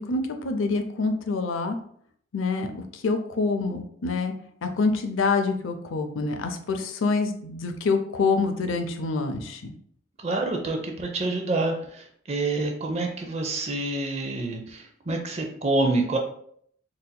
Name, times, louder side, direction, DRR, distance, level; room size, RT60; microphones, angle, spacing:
voice 1, 0.0-1.8 2.3-4.3 4.6-9.7, left 4 dB, 85° left, 6 dB, 0.5 m, -26 dB
voice 2, 10.2-16.2, right 2 dB, 35° right, 3 dB, 0.5 m, -27 dB
4.0 x 2.7 x 2.2 m, 0.64 s
head